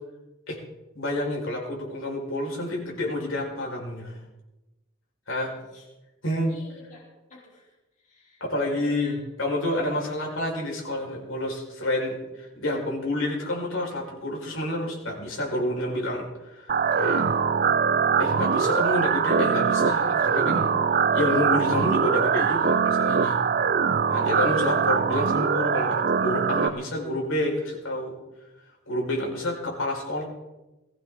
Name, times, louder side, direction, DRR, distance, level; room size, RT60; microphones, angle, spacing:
voice 1, 0.9-4.2 5.3-5.6 6.2-6.5 8.4-17.3 18.2-20.7 21.1-23.4 24.1-28.1 28.9-30.3, left 1 dB, 75° left, -2 dB, 5.0 m, -29 dB
voice 2, 5.5-5.8 6.5-7.0 7.3-7.7 8.0-8.4 8.8-9.1 9.8-9.9 24.1-24.7, left 3 dB, 40° left, -3 dB, 3.5 m, -49 dB
sound 1, 16.7-26.7, right 6 dB, 45° right, 0.6 m, -22 dB
20.5 x 15.5 x 3.8 m, 1.0 s
head